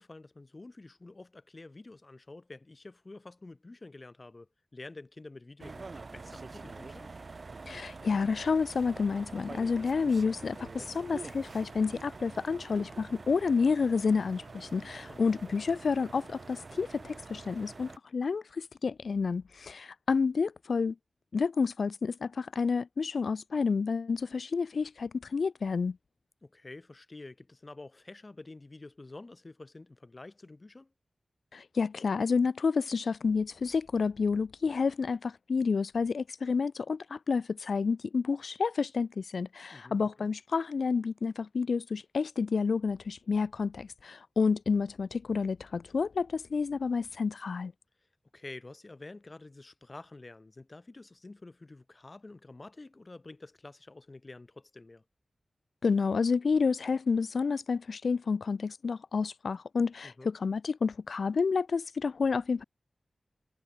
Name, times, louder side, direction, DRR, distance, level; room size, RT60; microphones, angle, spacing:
voice 1, 0.0-7.1 15.1-15.6 26.4-30.9 39.7-40.3 48.3-55.0 60.0-60.3, left 2 dB, 45° left, 2.8 m, -49 dB
sound 1, 5.6-18.0, right 3 dB, 60° right, 1.1 m, -46 dB
voice 2, 7.7-21.0 21.3-26.0 31.5-47.7 55.8-62.6, left 5 dB, 85° left, 0.5 m, -29 dB
cardioid pair, 50°, 0 cm